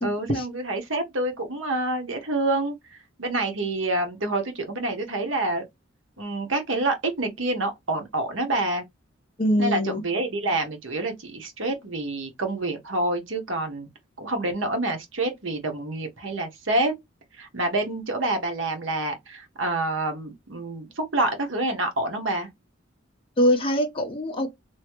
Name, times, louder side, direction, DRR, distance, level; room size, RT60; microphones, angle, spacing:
voice 1, 0.0-5.6 6.2-8.8 9.6-13.9 14.2-16.9 17.4-22.5, right 2 dB, 70° right, 1.2 m, -27 dB
voice 2, 9.4-10.0 23.4-24.6, equal, 30° left, 0.9 m, -23 dB
3.1 x 2.8 x 3.0 m
head